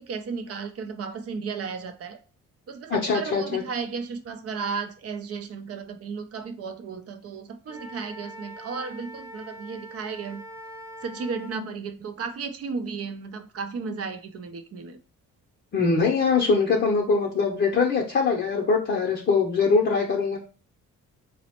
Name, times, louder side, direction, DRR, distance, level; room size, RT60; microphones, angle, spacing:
voice 1, 0.0-2.2 2.7-10.4 11.0-15.0, right 5 dB, 50° right, 0.5 m, -34 dB
voice 2, 2.9-3.6 15.7-20.4, left 4 dB, 40° left, 0.6 m, -22 dB
Wind instrument woodwind instrument, 7.7-11.6, right 1 dB, 10° right, 0.6 m, -43 dB
4.0 x 2.1 x 2.9 m
cardioid pair, 90°, 30 cm